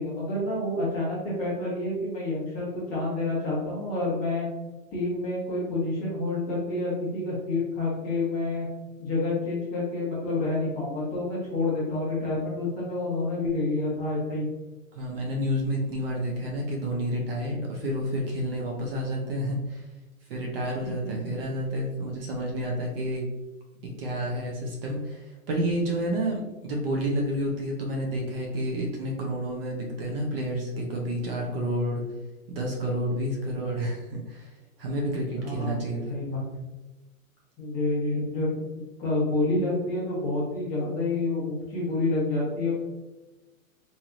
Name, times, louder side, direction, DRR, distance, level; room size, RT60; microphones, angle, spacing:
voice 1, 0.0-4.5 4.9-8.7 9.0-14.5 20.8-21.1 35.4-36.5 37.6-42.7, left 2 dB, 20° left, -6 dB, 0.9 m, -28 dB
voice 2, 14.9-19.8 20.3-23.2 23.8-32.0 32.5-34.5 34.8-36.2, equal, 45° right, -1 dB, 0.6 m, -30 dB
3.1 x 2.7 x 2.4 m, 1.1 s
hypercardioid pair, 145°, 42 cm